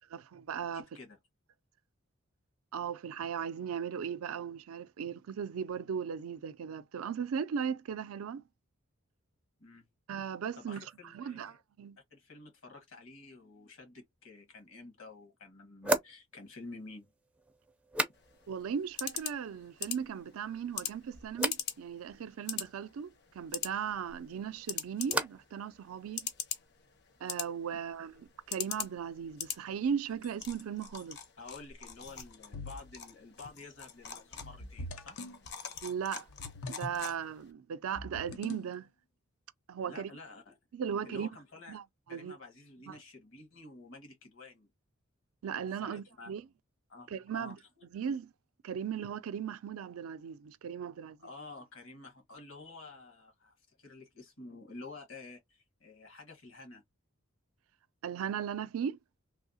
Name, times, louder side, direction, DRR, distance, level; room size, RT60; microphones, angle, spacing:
voice 1, 0.1-0.8 2.7-8.4 10.1-10.8 11.1-12.0 18.5-23.1 23.3-26.3 27.2-31.2 35.8-36.3 36.7-38.9 39.7-40.1 40.7-41.3 41.7-42.4 42.9-43.0 45.4-46.4 47.1-47.6 47.9-48.3 48.6-51.2 58.0-59.0, right 7 dB, 80° right, 0.4 m, -37 dB
voice 2, 0.7-1.2 9.6-9.9 10.6-11.6 12.1-17.1 31.4-35.2 39.8-40.6 41.0-41.8 42.1-44.7 45.8-46.3 46.9-47.6 51.2-56.8, left 3 dB, 70° left, 1.7 m, -50 dB
sound 1, 14.6-14.7 15.8-18.7 18.9-19.5 19.9-20.5 21.3-21.7 24.1-25.6 25.8-26.4, right 2 dB, 5° right, 0.4 m, -37 dB
sound 2, 18.1-37.5, left 8 dB, 50° left, 0.8 m, -43 dB
sound 3, 32.5-33.0 34.4-35.4 36.3-37.0 38.0-38.8, left 2 dB, 90° left, 0.7 m, -43 dB
3.3 x 2.7 x 2.7 m
head